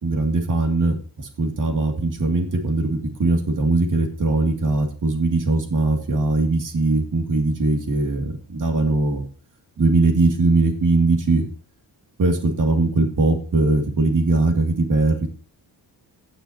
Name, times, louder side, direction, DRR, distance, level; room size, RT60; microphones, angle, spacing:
voice 1, 0.0-9.2 9.8-11.5 12.2-15.3, right 2 dB, 45° right, 5 dB, 2.4 m, -20 dB
17.5 x 6.2 x 2.9 m, 0.41 s
cardioid pair, 120°, 43 cm